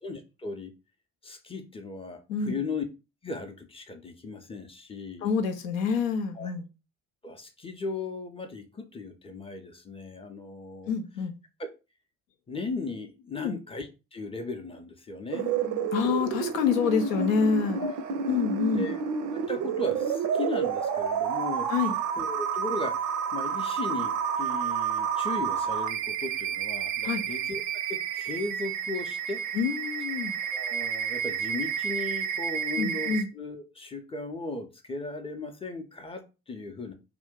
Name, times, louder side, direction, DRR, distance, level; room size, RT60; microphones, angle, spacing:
voice 1, 0.0-0.7 1.2-2.8 3.2-5.3 6.3-6.5 7.2-10.9 11.6-11.7 12.5-15.5 17.8-17.9 18.7-19.0 19.3-21.7 22.2-23.0 23.3-27.6 27.9-29.4 30.5-36.9, left 3 dB, 15° left, 0.6 m, -37 dB
voice 2, 5.2-6.7 10.9-11.3 13.3-13.6 15.9-17.8 18.3-18.9 21.7-21.9 27.0-27.2 29.5-30.3 32.8-33.3, left 6 dB, 75° left, 0.5 m, -27 dB
sound 1, 15.3-33.2, right 7 dB, 50° right, 0.5 m, -30 dB
2.5 x 2.2 x 3.6 m
figure-of-eight pair, 40°, 40 cm